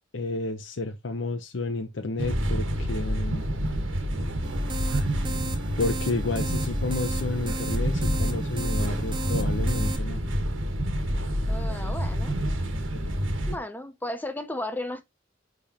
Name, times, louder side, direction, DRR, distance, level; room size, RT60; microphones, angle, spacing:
voice 1, 0.1-3.4 5.8-10.2, left 2 dB, 75° left, 0.7 m, -31 dB
sound 1, 2.2-13.6, equal, 90° right, 1.4 m, -28 dB
sound 2, 4.4-10.0, right 2 dB, 25° right, 1.0 m, -36 dB
voice 2, 11.5-12.3 13.5-15.0, left 1 dB, 10° left, 0.5 m, -34 dB
10.0 x 3.5 x 2.8 m
head